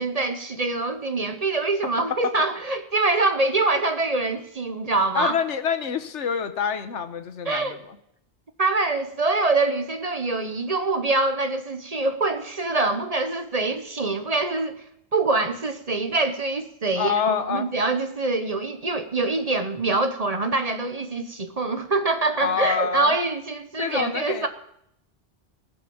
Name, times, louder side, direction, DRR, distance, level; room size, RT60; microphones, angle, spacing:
voice 1, 0.0-5.3 7.4-7.8 8.6-14.8 15.1-24.5, right 3 dB, 35° right, 8 dB, 1.0 m, -24 dB
voice 2, 5.1-8.0 17.0-17.7 22.4-23.1 23.8-24.5, left 7 dB, 80° left, 10 dB, 1.3 m, -26 dB
18.0 x 6.1 x 7.0 m, 0.74 s
omnidirectional pair, 1.2 m